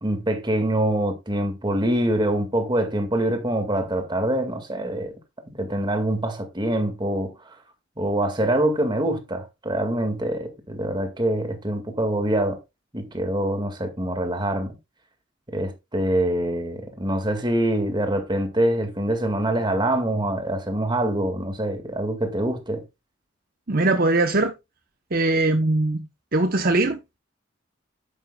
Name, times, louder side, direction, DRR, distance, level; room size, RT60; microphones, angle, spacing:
voice 1, 0.0-5.2 5.5-7.3 8.0-12.6 12.9-14.8 15.5-22.8, right 1 dB, 25° right, 2.0 m, -25 dB
voice 2, 23.7-24.5 25.1-27.2, right 2 dB, 50° right, 0.9 m, -21 dB
11.0 x 9.3 x 2.3 m
head